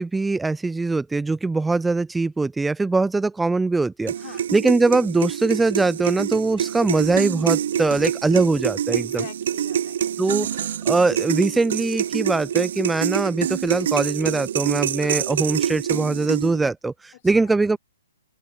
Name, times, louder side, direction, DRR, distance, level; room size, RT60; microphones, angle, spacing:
voice 1, 0.0-4.1 4.5-9.2 10.2-17.8, right 3 dB, 5° right, 0.5 m, -22 dB
sound 1, 4.1-16.7, right 9 dB, 60° right, 0.7 m, -26 dB
voice 2, 8.9-10.2 17.1-17.5, left 16 dB, 45° left, 5.9 m, -44 dB
open air
hypercardioid pair, 130°, 0 cm